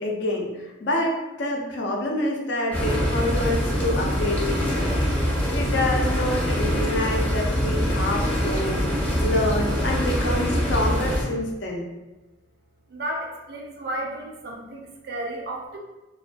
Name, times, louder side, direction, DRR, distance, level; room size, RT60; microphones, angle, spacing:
voice 1, 0.0-11.9, left 1 dB, 65° left, 0 dB, 0.5 m, -27 dB
sound 1, 2.7-11.2, equal, 10° left, 0.5 m, -24 dB
voice 2, 12.9-15.8, right 1 dB, 60° right, 0 dB, 0.4 m, -33 dB
2.2 x 2.2 x 2.5 m, 1.1 s
head